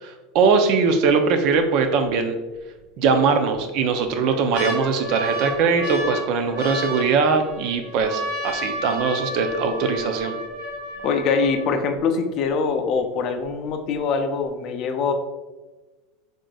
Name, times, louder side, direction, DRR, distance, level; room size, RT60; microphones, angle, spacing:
voice 1, 0.0-2.4 3.0-10.4, right 5 dB, 55° right, 6 dB, 0.5 m, -21 dB
sound 1, 1.1-1.6 2.0-2.1 3.0-3.6 4.0-12.0 12.7-12.8 13.0-13.4 13.9-14.0, equal, 75° right, 1.2 m, -32 dB
voice 2, 11.0-15.1, left 5 dB, 45° left, 6 dB, 0.4 m, -23 dB
3.7 x 3.7 x 2.3 m, 1.2 s
supercardioid pair, 145°, 0 cm